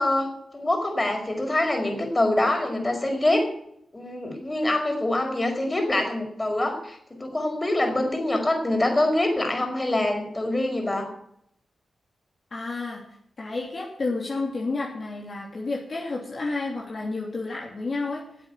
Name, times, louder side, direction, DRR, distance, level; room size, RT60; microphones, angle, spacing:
voice 1, 0.0-3.5 3.9-11.1, left 1 dB, 25° left, 3 dB, 5.0 m, -25 dB
voice 2, 12.5-13.0 13.4-18.2, left 3 dB, 50° left, -2 dB, 3.1 m, -30 dB
11.5 x 8.1 x 9.1 m, 0.73 s
supercardioid pair, 45°, 0 cm